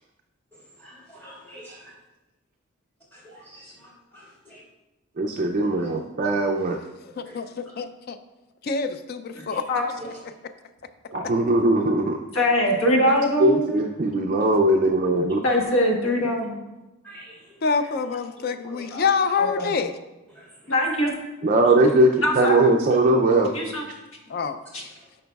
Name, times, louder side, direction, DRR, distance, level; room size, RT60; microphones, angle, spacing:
voice 1, 0.5-1.9 3.1-4.6 5.6-6.5 7.2-7.4 9.5-9.6 10.0-10.2 14.4-14.5 15.5-15.6 17.0-18.2 18.7-19.2 20.3-20.7 21.7-21.8 24.7-25.1, equal, 10° left, -6 dB, 1.9 m, -47 dB
voice 2, 5.2-6.8 11.1-12.2 13.4-15.4 21.4-23.5, right 2 dB, 40° right, 2 dB, 0.3 m, -20 dB
voice 3, 7.2-8.2 8.6-9.7 17.6-19.9 24.3-24.6, left 5 dB, 45° left, 10 dB, 0.3 m, -26 dB
voice 4, 12.3-13.7 15.4-16.6 18.6-19.0 19.4-19.7 20.7-21.1 22.2-22.6 23.5-23.8 24.7-24.8, equal, 75° left, 0 dB, 1.3 m, -22 dB
9.1 x 5.3 x 2.3 m, 1.0 s
head